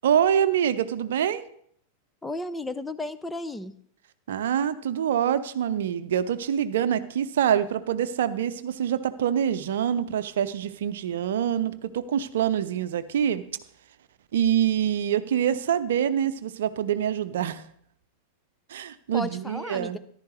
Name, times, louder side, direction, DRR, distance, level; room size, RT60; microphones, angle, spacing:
voice 1, 0.0-1.4 4.3-13.4 14.3-17.6 18.7-20.0, right 9 dB, 60° right, 13 dB, 0.7 m, -25 dB
voice 2, 2.2-3.7 19.1-20.0, left 2 dB, 10° left, 12 dB, 0.6 m, -33 dB
14.0 x 11.5 x 3.2 m, 0.64 s
figure-of-eight pair, 90°, 0 cm